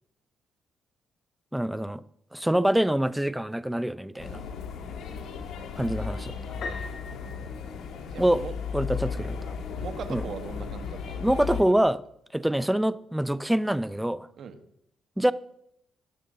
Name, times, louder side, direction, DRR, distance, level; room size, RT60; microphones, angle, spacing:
voice 1, 1.5-2.0 2.3-4.4 5.8-6.3 8.2-8.4 8.7-9.5 10.1-10.2 11.2-12.0 12.3-14.3 15.2-15.3, right 1 dB, 5° right, 0.4 m, -25 dB
sound 1, 4.2-11.6, left 6 dB, 75° left, 1.5 m, -35 dB
Piano, 6.6-8.4, left 4 dB, 60° left, 1.6 m, -40 dB
voice 2, 8.1-8.5 9.1-9.3 9.8-11.3 14.4-14.6, right 6 dB, 60° right, 1.1 m, -40 dB
18.0 x 6.6 x 3.9 m
cardioid pair, 90°, 0 cm